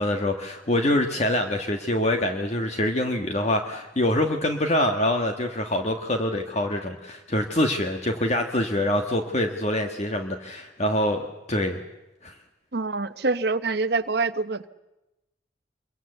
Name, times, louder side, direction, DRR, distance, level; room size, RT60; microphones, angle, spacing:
voice 1, 0.0-11.8 12.2-12.3, left 1 dB, 35° left, 4 dB, 1.5 m, -25 dB
voice 2, 12.7-14.7, right 3 dB, 55° right, 10 dB, 0.9 m, -25 dB
26.5 x 23.0 x 8.0 m, 0.97 s
head